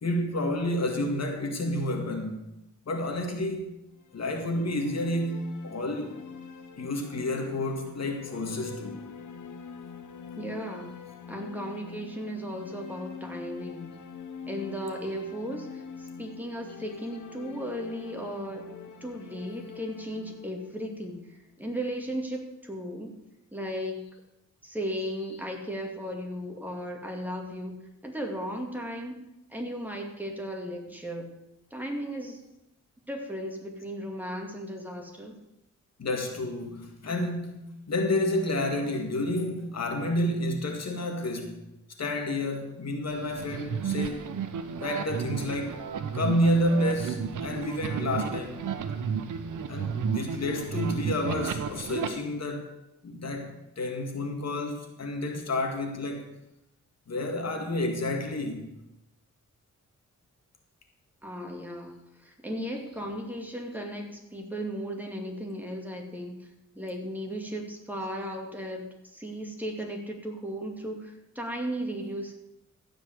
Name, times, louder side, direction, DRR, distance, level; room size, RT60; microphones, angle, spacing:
voice 1, 0.0-2.4 2.9-3.7 4.1-6.2 6.8-9.0 36.0-41.6 42.0-44.3 44.8-45.8 46.1-48.7 49.7-52.7 53.0-56.3 57.1-58.7, left 1 dB, 60° left, 2.0 m, -30 dB
sound 1, 3.9-21.9, left 6 dB, 80° left, 1.1 m, -44 dB
voice 2, 10.4-10.9 11.3-13.9 14.5-18.6 19.0-21.2 21.6-23.2 23.5-24.0 24.6-29.2 29.5-31.3 31.7-32.4 33.1-35.4 61.2-66.5 66.7-72.3, equal, 5° right, 2.4 m, -36 dB
sound 2, 43.1-52.1, right 6 dB, 90° right, 1.0 m, -32 dB
15.5 x 5.2 x 7.9 m
cardioid pair, 85°, 30 cm